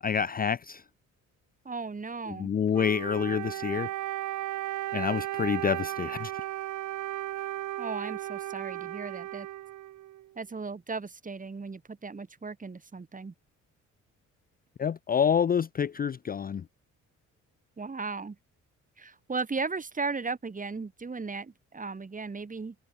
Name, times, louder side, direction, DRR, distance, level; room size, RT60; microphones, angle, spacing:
voice 1, 0.0-0.8 2.3-3.9 4.9-6.3 14.8-16.6, left 7 dB, 30° left, 0.5 m, -28 dB
voice 2, 1.6-2.5 7.8-9.5 10.3-13.3 17.8-18.4 19.0-22.7, right 4 dB, 25° right, 3.2 m, -36 dB
Wind instrument woodwind instrument, 2.7-10.3, right 14 dB, 75° right, 1.3 m, -35 dB
open air
cardioid pair, 90°, 30 cm